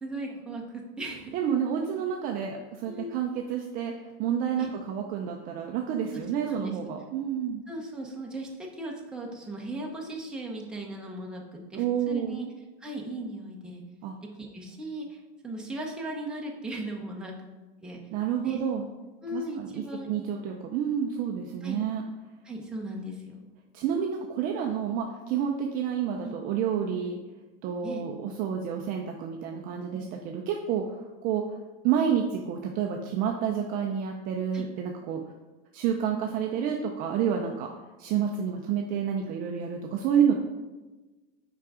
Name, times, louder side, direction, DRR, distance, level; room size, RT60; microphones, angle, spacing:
voice 1, 0.0-1.3 2.9-3.1 4.6-4.7 6.1-6.8 7.7-8.5 8.8-12.5 12.8-13.8 14.2-17.4 17.8-18.0 18.4-18.6 19.2-20.5 21.6-21.8 22.4-23.4 26.2-26.3 27.8-28.0 34.5-34.7, right 1 dB, 5° right, -2 dB, 0.8 m, -37 dB
voice 2, 1.3-3.9 4.2-7.6 11.7-12.4 14.0-14.1 18.1-18.9 19.3-22.0 23.7-27.2 27.6-30.9 31.2-31.5 31.8-35.2 35.7-37.7 38.0-40.3, right 8 dB, 30° right, 2 dB, 0.5 m, -29 dB
5.9 x 4.8 x 4.8 m, 1.2 s
supercardioid pair, 155°, 29 cm